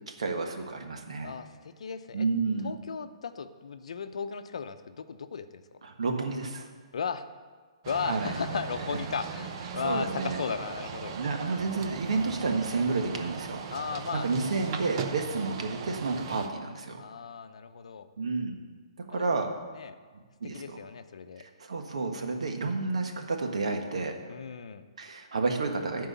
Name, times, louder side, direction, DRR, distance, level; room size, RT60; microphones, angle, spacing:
voice 1, 0.1-1.3 2.1-2.7 5.8-6.7 8.0-8.3 8.9-9.0 9.8-10.4 11.1-13.6 14.1-17.0 18.2-18.6 19.1-19.5 20.4-20.8 21.4-24.1 25.0-26.1, right 3 dB, 80° right, 4 dB, 1.5 m, -30 dB
voice 2, 1.2-2.3 2.6-5.6 6.9-7.3 7.9-11.2 13.7-14.3 17.0-18.1 19.1-19.3 19.7-20.0 20.5-21.5 24.3-24.8, left 6 dB, 80° left, 10 dB, 0.7 m, -35 dB
sound 1, 7.8-16.5, right 6 dB, 45° right, 0.9 m, -38 dB
11.0 x 4.7 x 8.2 m, 1.5 s
hypercardioid pair, 145°, 3 cm